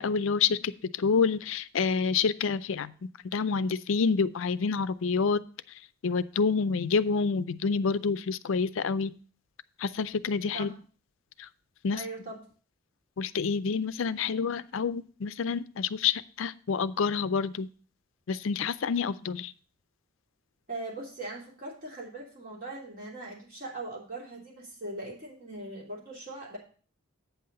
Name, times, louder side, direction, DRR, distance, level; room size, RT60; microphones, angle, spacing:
voice 1, 0.0-2.9 3.3-5.4 5.7-9.1 9.8-10.7 11.4-11.5 11.8-12.0 13.2-17.7 18.3-19.5, left 5 dB, 60° left, 15 dB, 0.4 m, -28 dB
voice 2, 11.9-12.4 20.7-26.6, right 2 dB, 40° right, -3 dB, 3.1 m, -40 dB
8.3 x 5.8 x 5.3 m, 0.40 s
head